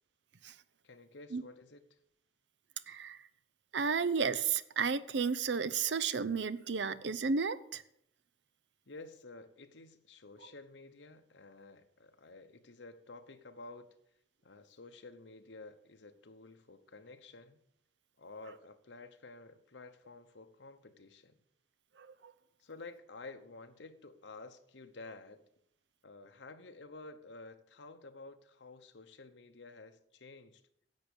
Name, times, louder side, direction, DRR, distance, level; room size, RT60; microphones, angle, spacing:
voice 1, 0.8-2.0 8.9-13.9 14.4-17.6 18.2-21.4 22.6-25.4 26.0-30.6, left 3 dB, 80° left, 7 dB, 1.0 m, -52 dB
voice 2, 2.9-3.2 3.7-7.8 22.0-22.3, right 5 dB, 75° right, 15 dB, 0.6 m, -33 dB
11.0 x 7.6 x 7.0 m, 0.73 s
head